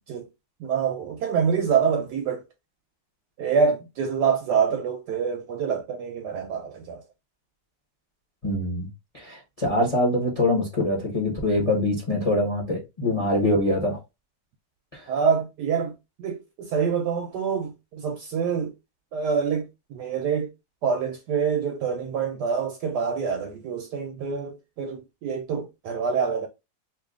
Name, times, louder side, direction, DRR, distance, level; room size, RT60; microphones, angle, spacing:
voice 1, 0.6-2.4 3.4-7.0 15.1-15.9 16.2-18.7 19.1-20.5 20.8-26.5, right 6 dB, 75° right, 1.0 m, -26 dB
voice 2, 8.4-8.9 9.1-14.0 14.9-15.0, left 1 dB, 30° left, 0.8 m, -24 dB
2.9 x 2.7 x 3.5 m
omnidirectional pair, 2.0 m